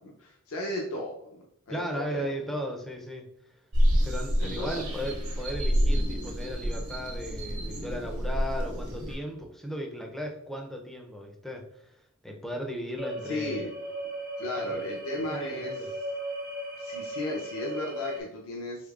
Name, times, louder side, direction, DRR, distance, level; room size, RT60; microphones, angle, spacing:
voice 1, 0.0-2.2 4.4-4.7 13.2-13.7 14.4-15.9 16.8-18.9, left 1 dB, 65° left, -2 dB, 0.6 m, -35 dB
voice 2, 1.7-3.2 4.0-11.9 12.2-13.7 14.6-14.8 15.3-15.9, equal, ahead, 1 dB, 0.4 m, -36 dB
sound 1, 3.7-9.2, equal, 70° right, 1.0 m, -28 dB
sound 2, 13.0-18.2, equal, 45° right, 0.6 m, -36 dB
3.6 x 3.4 x 2.4 m, 0.73 s
head